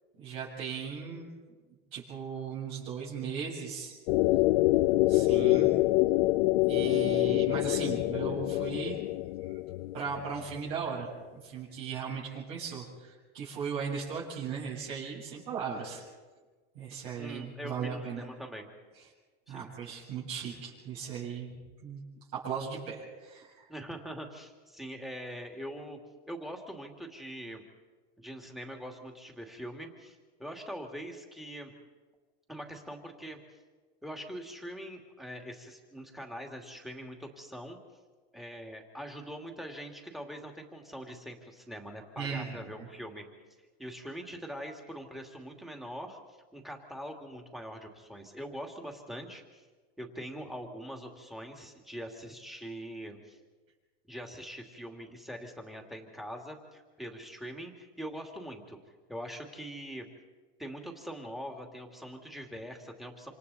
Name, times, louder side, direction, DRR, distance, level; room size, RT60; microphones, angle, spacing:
voice 1, 0.1-1.3 1.9-4.0 5.1-5.7 6.6-9.0 9.4-9.6 9.9-16.0 16.7-18.2 19.5-21.5 21.8-22.0 22.3-23.7 42.2-42.9, right 6 dB, 70° right, -6 dB, 7.8 m, -37 dB
sound 1, 4.1-10.6, left 19 dB, 80° left, 0.5 m, -26 dB
voice 2, 17.2-18.7 19.5-19.7 23.7-26.0 26.3-27.6 28.2-31.7 32.5-33.4 34.0-37.8 38.3-43.2 43.8-46.2 46.5-49.6 50.0-53.4 54.1-58.8 59.1-60.1 60.6-63.3, equal, ahead, 2 dB, 2.5 m, -43 dB
27.5 x 27.0 x 4.2 m, 1.4 s
supercardioid pair, 145°, 29 cm